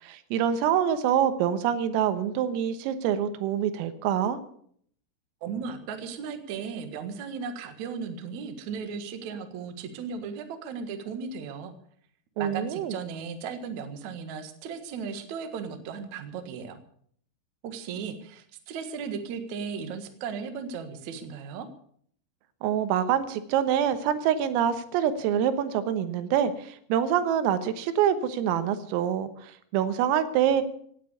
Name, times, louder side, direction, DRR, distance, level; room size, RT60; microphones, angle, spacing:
voice 1, 0.0-4.4 12.4-13.0 22.6-30.6, right 9 dB, 85° right, 11 dB, 3.8 m, -26 dB
voice 2, 5.4-11.7 12.4-16.8 17.6-21.7, right 6 dB, 65° right, 7 dB, 1.8 m, -36 dB
17.0 x 9.4 x 8.4 m, 0.63 s
omnidirectional pair, 5.9 m